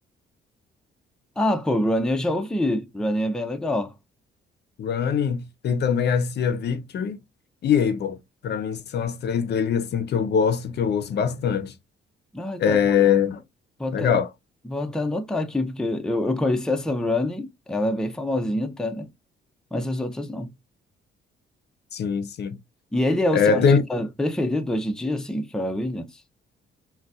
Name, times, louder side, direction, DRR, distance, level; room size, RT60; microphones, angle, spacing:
voice 1, 1.4-3.9 12.3-12.8 13.8-14.2 14.6-19.1 19.7-20.5 22.9-26.2, left 1 dB, 5° left, 0.5 m, -25 dB
voice 2, 4.8-7.2 7.6-8.2 8.4-11.7 12.6-13.4 13.9-14.3 21.9-22.6 23.3-23.8, left 7 dB, 55° left, 0.6 m, -22 dB
3.9 x 2.2 x 2.3 m
cardioid pair, 90°, 20 cm